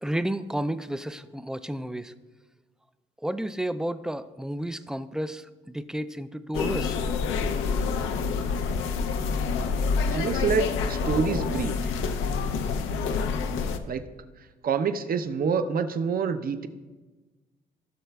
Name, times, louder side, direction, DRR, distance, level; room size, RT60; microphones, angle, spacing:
voice 1, 0.0-2.1 3.2-7.0, right 1 dB, 5° right, 12 dB, 0.3 m, -31 dB
sound 1, 6.5-13.8, left 5 dB, 90° left, 0.6 m, -27 dB
voice 2, 10.1-11.7 13.9-14.0 14.6-16.7, right 6 dB, 50° right, 10 dB, 0.7 m, -27 dB
16.0 x 6.5 x 2.3 m, 1.2 s
cardioid pair, 90°, 20 cm